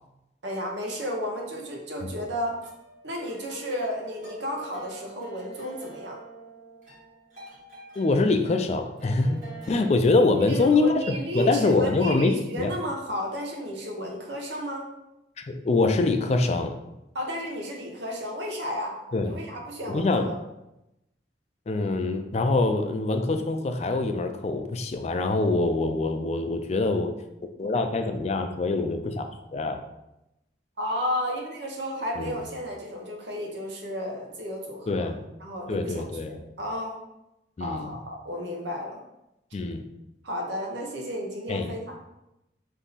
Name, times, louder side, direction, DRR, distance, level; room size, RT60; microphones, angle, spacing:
voice 1, 0.4-2.6 3.0-6.2 10.3-14.9 17.1-18.9 19.2-20.4 30.8-35.1 35.4-37.0 37.6-39.0 40.2-41.9, equal, 85° right, 0 dB, 0.9 m, -33 dB
sound 1, 2.3-9.9, right 2 dB, 45° right, 1.3 m, -46 dB
voice 2, 8.0-12.7 15.4-16.8 19.1-19.4 19.9-20.3 21.7-27.1 27.6-29.8 32.2-32.4 34.9-35.2 35.7-36.4 37.6-37.9 39.5-39.8 41.5-41.7, left 3 dB, 40° left, 6 dB, 0.3 m, -24 dB
3.6 x 2.7 x 4.0 m, 0.89 s
head